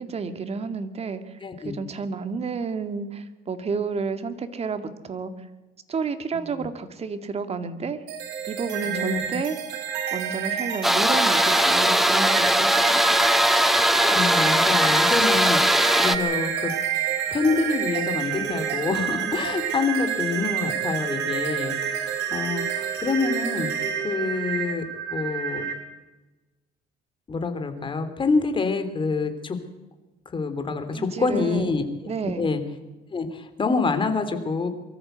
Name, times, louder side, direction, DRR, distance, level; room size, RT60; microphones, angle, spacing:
voice 1, 0.0-1.3 1.6-5.3 5.9-8.0 8.5-9.6 10.1-13.2 30.9-31.7 32.1-32.5, right 5 dB, 40° right, 9 dB, 2.2 m, -30 dB
voice 2, 1.4-1.7 6.3-6.7 8.8-9.2 14.1-16.7 17.3-23.7 24.0-24.8 25.1-25.6 27.3-29.6 30.3-31.9 32.2-32.6 33.1-34.7, left 4 dB, 30° left, 8 dB, 3.2 m, -26 dB
sound 1, 8.1-25.7, right 7 dB, 90° right, 4.5 m, -28 dB
sound 2, 10.8-16.2, equal, ahead, 1.3 m, -20 dB
23.5 x 14.0 x 8.1 m, 1.1 s
cardioid pair, 110°, 17 cm